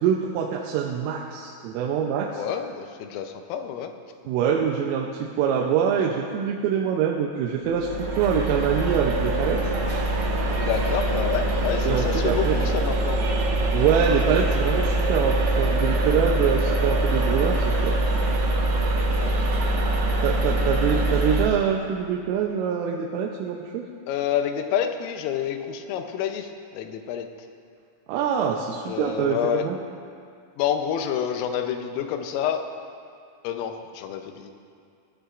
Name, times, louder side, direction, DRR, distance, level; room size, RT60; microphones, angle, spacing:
voice 1, 0.0-2.4 4.3-9.6 11.8-12.6 13.7-17.9 20.2-23.9 28.1-29.8, right 7 dB, 85° right, 0 dB, 3.3 m, -25 dB
voice 2, 2.3-3.9 10.6-13.2 19.2-19.8 24.1-27.3 28.9-29.7 30.6-32.7 33.5-34.5, left 9 dB, 90° left, 6 dB, 3.4 m, -28 dB
sound 1, 7.7-21.5, right 1 dB, 65° right, 3.0 m, -23 dB
20.5 x 12.5 x 2.5 m, 2.3 s
omnidirectional pair, 5.7 m